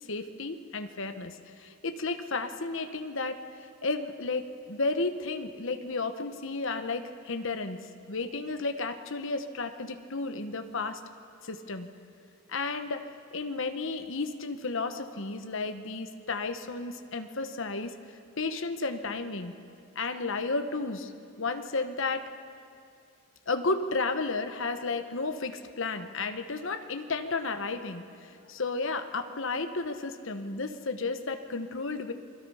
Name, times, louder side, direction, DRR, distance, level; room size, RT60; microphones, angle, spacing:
voice 1, 0.1-7.8 8.1-11.0 11.4-11.9 12.5-13.0 13.3-17.9 18.4-19.5 19.9-21.1 21.4-22.3 23.5-32.1, left 3 dB, 60° left, 8 dB, 1.2 m, -33 dB
29.0 x 21.5 x 5.7 m, 2.4 s
head